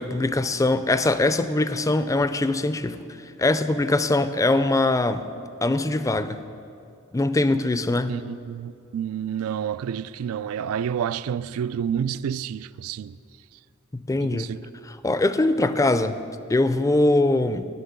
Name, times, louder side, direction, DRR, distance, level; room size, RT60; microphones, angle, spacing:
voice 1, 0.0-3.0 3.4-5.2 5.6-6.4 7.1-8.1 13.9-14.5 14.9-16.2 16.5-17.7, left 2 dB, 15° left, 0.4 m, -22 dB
voice 2, 8.1-13.2 14.1-14.7, right 8 dB, 75° right, 0.3 m, -29 dB
13.5 x 6.0 x 9.5 m
head